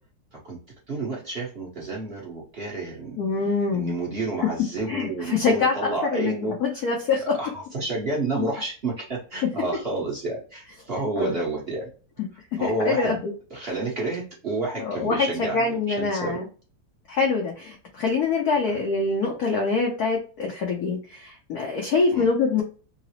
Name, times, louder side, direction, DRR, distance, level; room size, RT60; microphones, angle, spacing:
voice 1, 0.9-3.2 3.7-6.5 7.4-11.9 12.6-13.2 13.5-16.4 18.7-18.8 22.1-22.3, right 2 dB, 45° right, -4 dB, 0.8 m, -30 dB
voice 2, 3.2-3.9 4.9-6.3 6.6-7.4 11.2-11.4 12.6-13.3 14.8-16.5 17.1-22.6, left 4 dB, 70° left, 0 dB, 0.9 m, -24 dB
3.8 x 2.0 x 2.8 m, 0.37 s
omnidirectional pair, 2.4 m